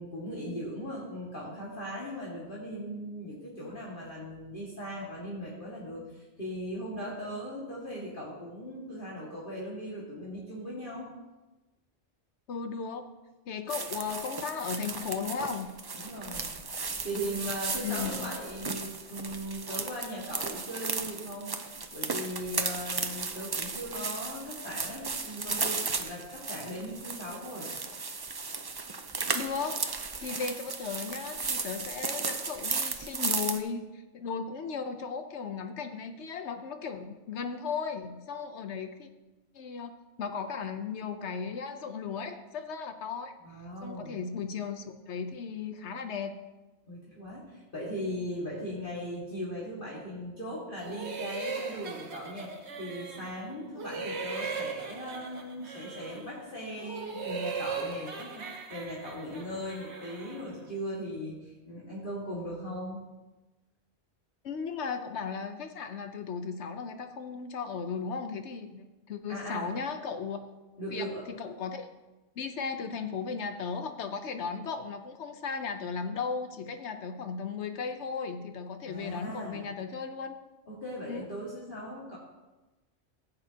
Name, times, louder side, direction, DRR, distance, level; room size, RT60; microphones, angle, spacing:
voice 1, 0.0-11.1 16.0-16.5 17.0-21.6 21.9-27.7 43.4-44.2 46.9-63.0 69.3-69.7 70.8-71.2 78.9-79.7 80.7-82.2, equal, 50° left, -7 dB, 2.1 m, -38 dB
voice 2, 12.5-13.1 13.5-15.7 17.8-18.3 29.3-39.1 39.5-39.9 40.2-43.3 43.8-46.3 64.4-70.4 70.9-71.9 72.4-80.3 81.1-81.3, left 5 dB, 75° left, 7 dB, 1.0 m, -36 dB
sound 1, 13.7-33.6, right 4 dB, 30° right, 0.4 m, -35 dB
sound 2, 50.8-53.4 53.7-56.3 56.7-60.5, right 5 dB, 70° right, 1.3 m, -38 dB
15.5 x 8.1 x 2.8 m, 1.1 s
omnidirectional pair, 1.2 m